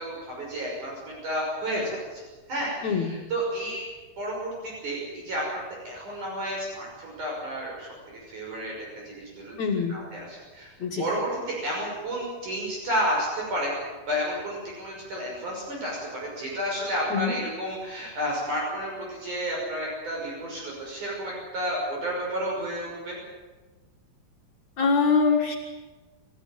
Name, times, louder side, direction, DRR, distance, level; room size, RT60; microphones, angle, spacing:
voice 1, 0.0-2.2 2.5-3.9 4.2-23.2, equal, 55° right, -3 dB, 7.4 m, -31 dB
voice 2, 2.8-3.1 9.6-10.0 10.8-11.0 17.1-17.3 24.8-25.5, left 5 dB, 55° left, 0 dB, 3.0 m, -23 dB
29.0 x 14.5 x 9.4 m, 1.2 s
omnidirectional pair, 4.2 m